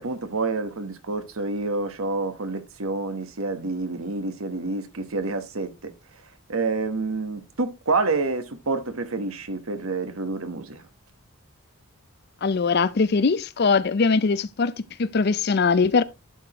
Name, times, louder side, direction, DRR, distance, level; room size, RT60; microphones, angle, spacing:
voice 1, 0.0-5.9 6.5-10.8, right 3 dB, 80° right, 1.2 m, -28 dB
voice 2, 12.4-16.0, left 4 dB, 50° left, 0.5 m, -21 dB
11.5 x 4.9 x 3.0 m
head